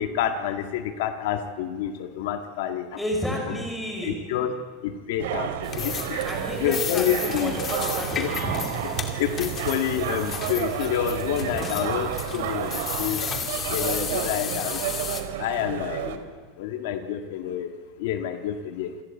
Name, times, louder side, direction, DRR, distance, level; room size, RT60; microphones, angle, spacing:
voice 1, 0.0-3.0 3.5-3.6 4.0-4.5 4.8-6.3 6.6-7.5 8.2-8.3 9.2-13.2 13.7-14.8 15.4-16.2 16.6-17.7 18.0-18.9, left 10 dB, 65° left, 7 dB, 1.7 m, -28 dB
voice 2, 3.0-4.3 6.3-8.6 11.6-11.8, equal, ahead, 1 dB, 5.6 m, -31 dB
sound 1, 5.2-16.2, right 10 dB, 75° right, 2.5 m, -31 dB
sound 2, 5.6-15.2, left 7 dB, 20° left, 2.1 m, -33 dB
27.0 x 20.5 x 8.5 m, 1.5 s
supercardioid pair, 165°, 0 cm